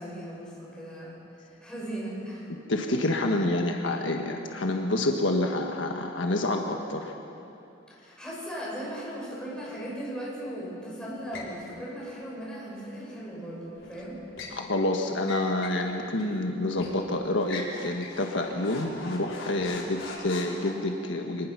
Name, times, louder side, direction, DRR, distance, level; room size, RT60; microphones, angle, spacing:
voice 1, 0.0-2.5 8.0-14.2, equal, 5° left, -6 dB, 7.5 m, -38 dB
voice 2, 2.7-7.1 14.5-21.5, left 2 dB, 75° left, 2 dB, 1.5 m, -28 dB
sound 1, 11.3-11.6 13.8-14.6 15.2-15.8 16.2-16.3 16.8-17.0 17.4-20.7, left 2 dB, 90° left, 4.6 m, -41 dB
25.0 x 20.0 x 6.1 m, 2.7 s
head